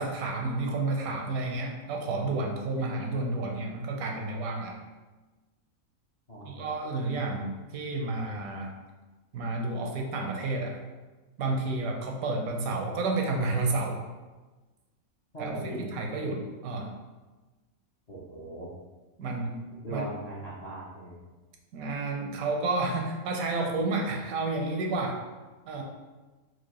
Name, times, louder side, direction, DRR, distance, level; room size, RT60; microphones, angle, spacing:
voice 1, 0.0-4.7 6.4-8.7 9.3-10.8 11.4-14.0 15.4-16.9 19.2-19.5 19.9-20.1 21.7-25.2 25.7-25.8, right 3 dB, 80° right, 1 dB, 1.0 m, -30 dB
voice 2, 15.3-15.9 18.1-18.7 19.8-21.2, right 1 dB, 45° left, -8 dB, 0.5 m, -38 dB
4.4 x 2.4 x 2.9 m, 1.2 s
omnidirectional pair, 1.5 m